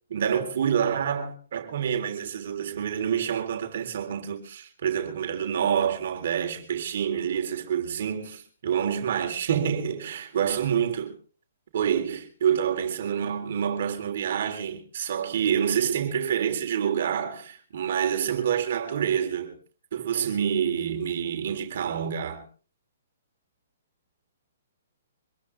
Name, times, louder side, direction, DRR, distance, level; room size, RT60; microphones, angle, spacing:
voice 1, 0.1-11.2 11.7-19.6 19.9-22.5, right 8 dB, 60° right, 3.4 m, -27 dB
25.0 x 14.0 x 3.4 m
hypercardioid pair, 155°, 0 cm